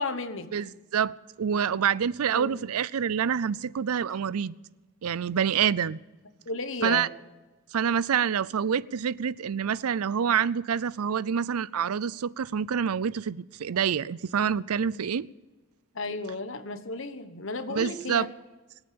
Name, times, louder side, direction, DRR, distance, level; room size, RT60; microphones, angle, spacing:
voice 1, 0.0-0.5 2.3-2.5 6.5-7.1 15.9-18.3, left 3 dB, 60° left, 1.3 m, -33 dB
voice 2, 0.5-4.5 5.0-6.0 6.8-7.1 7.7-15.3 17.7-18.3, right 7 dB, 90° right, 0.5 m, -27 dB
23.5 x 8.9 x 6.9 m
head